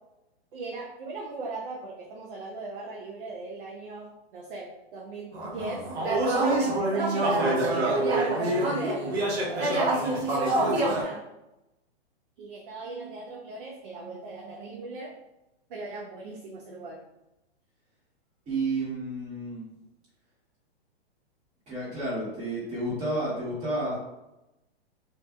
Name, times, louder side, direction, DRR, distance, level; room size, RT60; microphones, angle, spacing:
voice 1, 0.5-5.9 6.2-11.3 12.4-15.2 15.7-17.0, right 2 dB, 55° right, -3 dB, 0.6 m, -38 dB
sound 1, 5.3-11.0, right 2 dB, 85° right, 1.0 m, -26 dB
voice 2, 18.5-19.6 21.7-24.0, right 2 dB, 20° right, -9 dB, 1.3 m, -31 dB
2.6 x 2.5 x 2.3 m, 0.94 s
hypercardioid pair, 145°, 32 cm